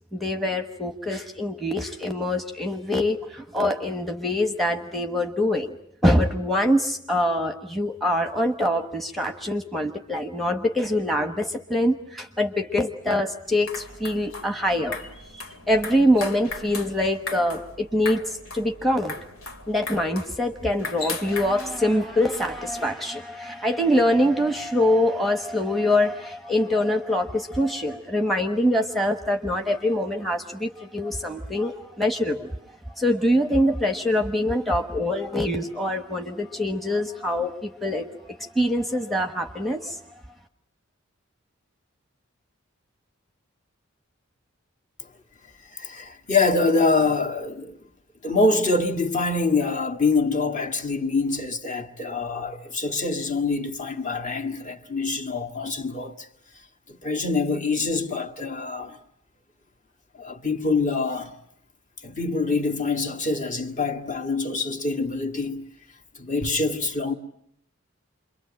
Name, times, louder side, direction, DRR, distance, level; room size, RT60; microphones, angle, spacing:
voice 1, 0.1-5.7 6.0-15.1 15.3-19.1 19.7-32.5 33.0-40.0, left 1 dB, ahead, 1.1 m, -24 dB
sound 1, 13.4-22.9, left 3 dB, 75° left, 2.8 m, -38 dB
voice 2, 45.6-47.8 48.2-56.3 56.9-59.0 60.1-61.3 62.0-65.7 66.1-67.1, left 3 dB, 35° left, 1.9 m, -25 dB
28.5 x 23.0 x 8.8 m
head